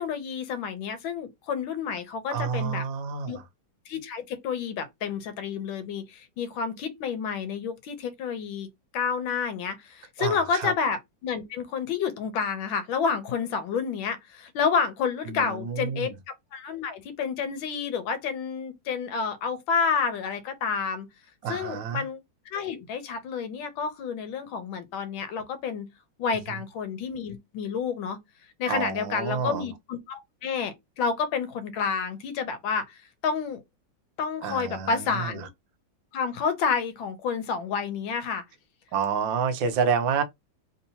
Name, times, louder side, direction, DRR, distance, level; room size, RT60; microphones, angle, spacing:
voice 1, 0.0-2.9 3.3-3.4 3.9-8.7 8.9-16.1 16.5-21.1 21.5-22.2 22.5-25.9 26.2-28.2 28.6-32.9 33.2-33.6 34.2-35.5 36.1-38.4, left 6 dB, 80° left, 1.5 m, -29 dB
voice 2, 2.3-3.4 10.2-10.7 15.3-16.1 21.4-22.0 28.7-29.7 34.4-35.5 38.9-40.2, right 6 dB, 75° right, 1.4 m, -29 dB
3.6 x 2.8 x 2.8 m
omnidirectional pair, 2.2 m